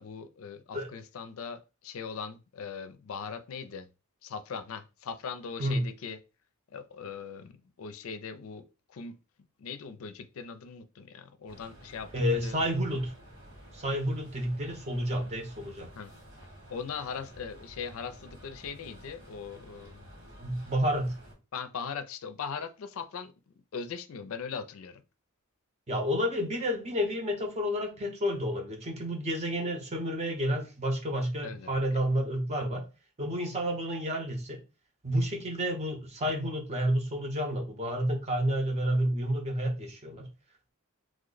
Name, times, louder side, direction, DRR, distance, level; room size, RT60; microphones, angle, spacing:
voice 1, 0.0-3.9 4.2-6.2 6.7-9.2 9.6-12.6 15.9-16.1 16.7-20.1 21.5-23.3 23.7-25.0 31.4-31.7, left 6 dB, 70° left, 0.4 m, -40 dB
sound 1, 11.5-21.3, equal, 70° right, 2.0 m, -51 dB
voice 2, 12.1-13.1 13.7-15.9 20.4-21.2 25.9-32.9 33.2-34.6 35.0-40.3, equal, 30° right, 0.7 m, -30 dB
3.1 x 2.1 x 3.8 m
head